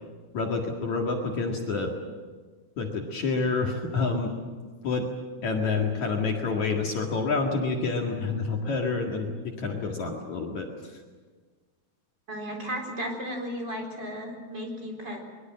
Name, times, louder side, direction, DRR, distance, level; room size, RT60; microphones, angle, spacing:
voice 1, 0.3-1.9 2.8-4.3 4.8-5.1 5.4-10.7, left 4 dB, 50° left, 0 dB, 3.0 m, -28 dB
voice 2, 12.3-15.2, equal, 25° right, 0 dB, 4.5 m, -34 dB
23.0 x 23.0 x 7.6 m, 1.4 s
omnidirectional pair, 4.6 m